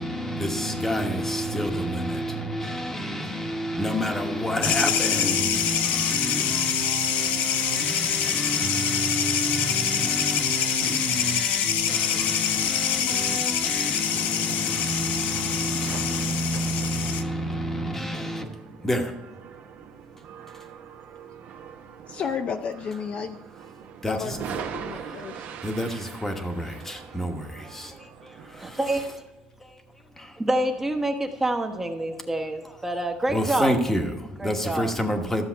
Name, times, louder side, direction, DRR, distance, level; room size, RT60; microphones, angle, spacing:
voice 1, 0.0-18.5 18.8-19.1 24.0-24.4 24.9-25.2 25.6-27.9 28.7-28.8 29.6-29.8 30.1-30.4 32.6-32.7 33.3-35.4, equal, 10° left, 1.2 m, -29 dB
sound 1, 4.6-17.2, left 9 dB, 70° left, 0.8 m, -25 dB
sound 2, 14.1-29.1, right 7 dB, 60° right, 1.1 m, -42 dB
voice 2, 22.1-23.4 24.1-25.6, left 6 dB, 40° left, 0.5 m, -33 dB
voice 3, 28.6-29.0 30.4-34.0 34.4-34.9, right 1 dB, 10° right, 1.0 m, -27 dB
13.0 x 7.3 x 4.6 m
cardioid pair, 145°, 3 cm